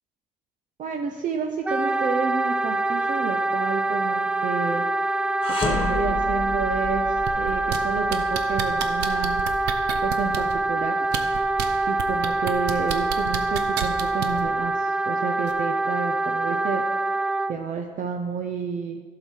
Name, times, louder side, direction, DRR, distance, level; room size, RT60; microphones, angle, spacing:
voice 1, 0.8-4.8 5.6-9.4 10.0-11.0 11.9-16.8 17.5-19.0, right 5 dB, 50° right, 3 dB, 0.7 m, -30 dB
Wind instrument woodwind instrument, 1.6-17.5, right 2 dB, 5° right, 0.3 m, -25 dB
sound 1, 5.4-10.6, left 4 dB, 30° left, 1.4 m, -33 dB
sound 2, 7.3-7.8 8.1-10.5 11.0-11.7 12.0-14.4 15.5-15.6, right 11 dB, 85° right, 0.8 m, -29 dB
11.5 x 5.8 x 4.6 m, 1.4 s
cardioid pair, 110°, 17 cm